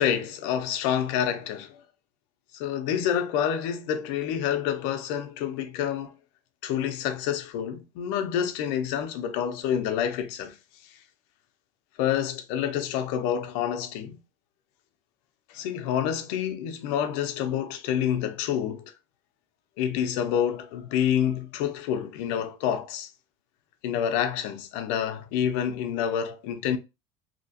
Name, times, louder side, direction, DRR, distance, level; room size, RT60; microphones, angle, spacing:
voice 1, 0.0-1.8 2.5-6.1 6.6-10.6 12.0-14.2 15.5-18.8 19.8-23.1 23.8-26.8, left 9 dB, 70° left, 0.7 m, -28 dB
3.0 x 2.8 x 2.8 m
cardioid pair, 165°, 11 cm